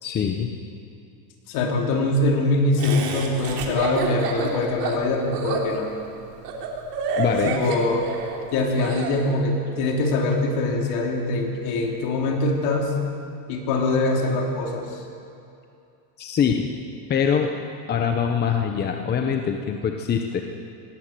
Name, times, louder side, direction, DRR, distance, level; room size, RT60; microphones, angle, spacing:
voice 1, 0.0-0.5 7.2-7.5 16.2-16.7 17.1-17.5 17.9-20.4, left 7 dB, 20° left, 4 dB, 0.9 m, -23 dB
voice 2, 1.5-5.9 7.4-8.0 8.5-12.9 13.5-15.0, left 2 dB, 50° left, 1 dB, 3.8 m, -23 dB
Laughter, 2.8-9.1, right 5 dB, 85° right, 3.6 m, -29 dB
18.0 x 16.0 x 9.1 m, 2.6 s
supercardioid pair, 150°, 47 cm